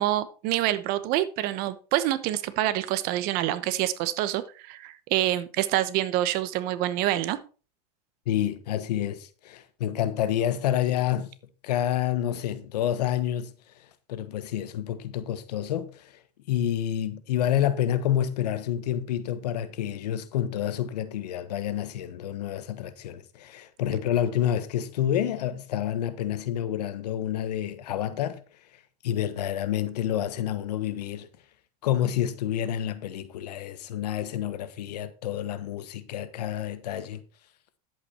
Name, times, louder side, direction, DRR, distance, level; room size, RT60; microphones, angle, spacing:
voice 1, 0.0-7.4, right 14 dB, 50° right, 1.0 m, -26 dB
voice 2, 8.3-11.3 11.6-13.5 14.1-16.1 16.5-28.4 29.0-31.3 31.8-37.2, left 11 dB, 90° left, 1.4 m, -28 dB
11.0 x 8.2 x 4.4 m
supercardioid pair, 140°, 20 cm